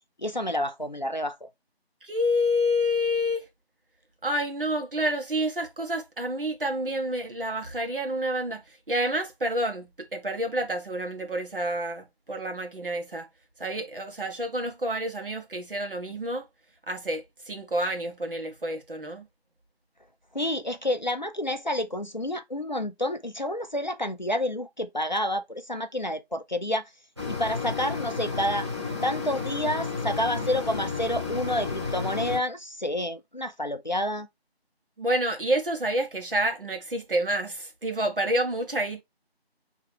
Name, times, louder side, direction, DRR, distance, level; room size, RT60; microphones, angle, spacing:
voice 1, 0.2-1.5 20.3-26.9 27.3-28.7 29.0-34.3, left 1 dB, 45° left, 0.4 m, -29 dB
voice 2, 2.0-3.5 4.2-13.3 13.6-16.5 16.9-19.3 35.0-39.0, equal, 55° right, 1.2 m, -28 dB
sound 1, 27.2-32.4, left 4 dB, 25° right, 1.0 m, -32 dB
4.5 x 2.9 x 3.3 m
figure-of-eight pair, 170°, 32 cm